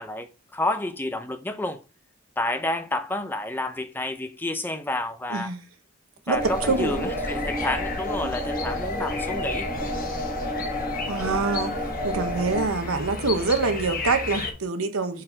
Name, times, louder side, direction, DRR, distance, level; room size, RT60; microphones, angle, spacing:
voice 1, 0.0-1.8 2.4-5.5 6.3-9.7, left 1 dB, 10° left, 0.4 m, -29 dB
sound 1, 6.3-12.7, left 1 dB, 10° right, 1.4 m, -30 dB
voice 2, 6.3-7.1 8.2-8.3 11.1-11.8 12.0-15.2, right 3 dB, 85° right, 1.0 m, -25 dB
sound 2, 6.4-14.5, left 3 dB, 40° left, 1.2 m, -34 dB
6.5 x 4.2 x 4.2 m
head